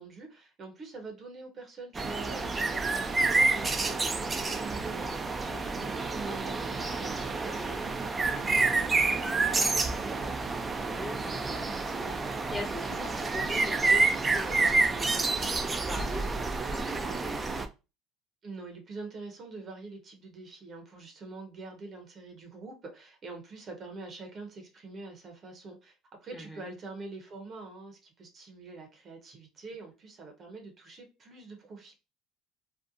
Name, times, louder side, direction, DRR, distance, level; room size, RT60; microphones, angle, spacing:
voice 1, 0.0-10.3 18.4-26.0 26.2-31.9, right 3 dB, 40° right, 0.8 m, -45 dB
sound 1, 1.9-17.7, right 3 dB, 25° right, 0.4 m, -29 dB
voice 2, 5.5-5.8 10.8-17.6 26.3-26.7, left 1 dB, 15° left, 1.0 m, -42 dB
2.7 x 2.1 x 2.5 m
hypercardioid pair, 80°, 0 cm